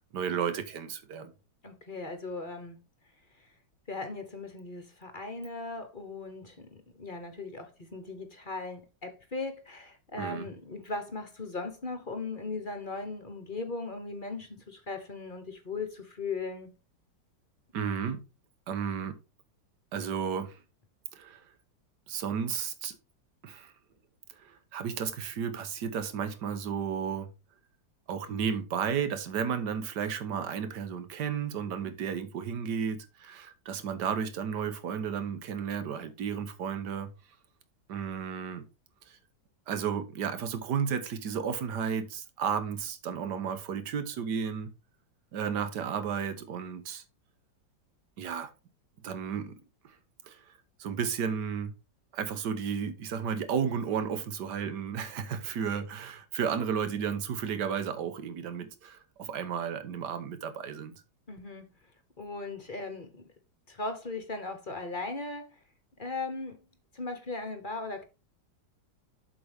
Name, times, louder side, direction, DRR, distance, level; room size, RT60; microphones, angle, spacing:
voice 1, 0.1-1.3 10.2-10.4 17.7-18.2 18.7-19.2 19.9-20.6 21.1-21.4 22.1-23.0 23.4-23.7 24.4-27.3 28.1-37.1 37.9-38.6 39.7-44.7 45.3-47.0 48.2-48.5 49.0-49.6 50.2-50.4 50.8-51.7 52.1-60.9, right 7 dB, 65° right, 1.7 m, -33 dB
voice 2, 1.6-2.8 3.4-3.5 3.9-16.7 61.3-61.7 62.2-63.2 63.7-65.5 66.0-66.6 66.9-68.0, left 3 dB, 30° left, 1.1 m, -38 dB
7.6 x 6.4 x 3.5 m
omnidirectional pair, 2.0 m